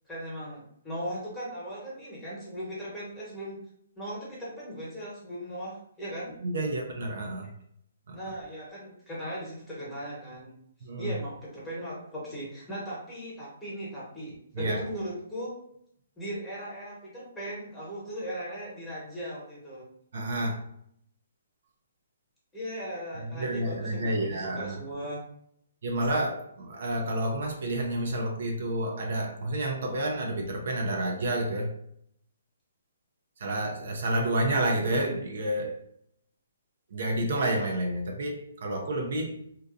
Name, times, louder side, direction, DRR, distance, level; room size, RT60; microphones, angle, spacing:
voice 1, 0.1-3.6 4.0-6.3 8.1-10.5 11.0-15.5 16.2-19.9 22.5-25.2, equal, 5° left, 1.1 m, -38 dB
voice 2, 6.4-7.5 8.1-8.2 10.8-11.1 14.5-14.8 20.1-20.7 23.2-24.8 25.8-31.8 33.4-35.8 36.9-39.4, right 1 dB, 60° right, 0.5 m, -29 dB
2.6 x 2.3 x 2.5 m
hypercardioid pair, 145°, 0 cm